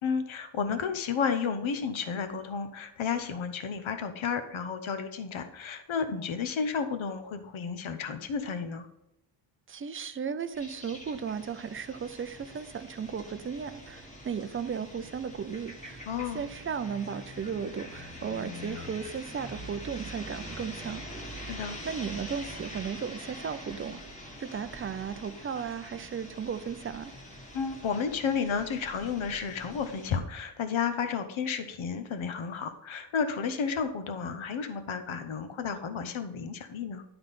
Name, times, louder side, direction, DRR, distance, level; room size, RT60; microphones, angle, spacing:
voice 1, 0.0-8.9 16.1-16.4 21.4-21.8 27.5-37.0, left 6 dB, 70° left, 8 dB, 1.0 m, -32 dB
voice 2, 9.7-16.0 16.3-21.0 21.8-24.0 24.4-27.1, right 6 dB, 30° right, 12 dB, 0.3 m, -35 dB
sound 1, 10.5-30.2, equal, 15° left, 1.6 m, -44 dB
11.5 x 4.0 x 5.2 m, 0.84 s
wide cardioid pair, 165°, 49 cm